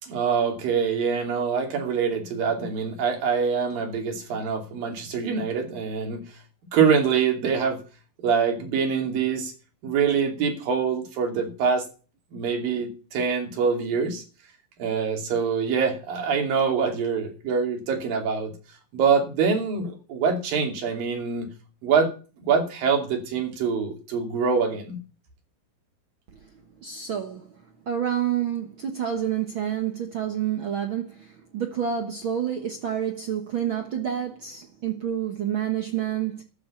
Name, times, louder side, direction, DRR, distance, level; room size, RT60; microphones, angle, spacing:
voice 1, 0.0-6.2 6.7-7.8 8.2-9.5 9.8-11.9 12.3-14.2 14.8-18.5 18.9-21.5 21.8-22.1 22.4-25.0, right 6 dB, 80° right, 4.5 m, -24 dB
voice 2, 26.8-36.4, right 9 dB, 60° right, 1.3 m, -29 dB
13.0 x 7.2 x 7.0 m
omnidirectional pair, 4.0 m